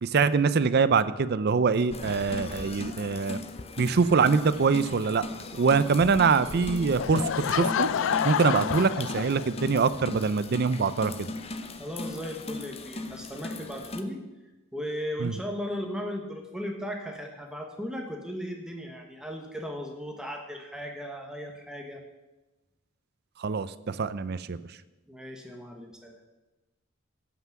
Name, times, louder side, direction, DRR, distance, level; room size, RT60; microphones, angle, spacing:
voice 1, 0.0-3.4 3.8-5.2 5.5-7.9 8.2-11.3 15.2-15.3 23.4-24.6, right 5 dB, 50° right, 15 dB, 0.5 m, -24 dB
sound 1, 1.9-14.0, left 2 dB, 30° left, 0.6 m, -38 dB
Laughter / Crowd, 7.0-9.8, left 7 dB, 60° left, 0.4 m, -28 dB
voice 2, 11.8-14.2 14.7-22.0 25.1-26.2, equal, 5° right, 2 dB, 1.1 m, -36 dB
15.0 x 5.8 x 5.9 m, 1.1 s
head